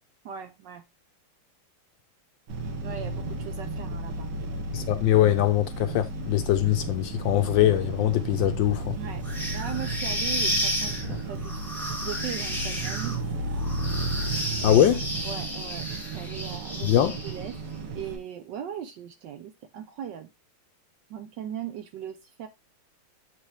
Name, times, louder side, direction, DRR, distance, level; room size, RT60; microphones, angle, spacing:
voice 1, 0.2-0.8 2.8-4.3 9.0-9.2 9.5-11.5 12.0-13.2 14.1-14.2 14.6-14.8 15.2-17.0 17.2-17.6 17.9-20.3 21.1-22.5, right 9 dB, 70° right, 1.1 m, -38 dB
sound 1, 2.5-18.2, right 2 dB, 90° right, 2.1 m, -33 dB
voice 2, 4.7-8.9 14.6-15.1 16.8-17.2, left 12 dB, 75° left, 1.1 m, -22 dB
sound 2, 9.2-17.5, equal, ahead, 1.6 m, -32 dB
7.6 x 4.8 x 3.3 m
omnidirectional pair, 2.4 m